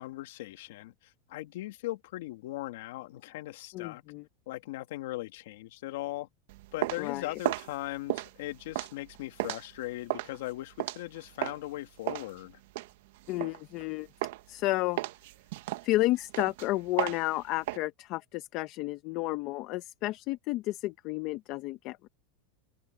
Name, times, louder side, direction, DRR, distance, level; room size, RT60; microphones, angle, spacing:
voice 1, 0.0-4.0 4.5-6.3 6.7-12.6, left 17 dB, 70° left, 2.2 m, -39 dB
voice 2, 3.7-4.2 7.0-7.4 13.3-14.1 14.5-15.0 15.8-22.1, left 18 dB, 45° left, 0.8 m, -31 dB
sound 1, 6.5-11.7 12.1-13.9 14.2-14.6 15.0-17.8, right 17 dB, 65° right, 1.1 m, -35 dB
open air
supercardioid pair, 155°, 0 cm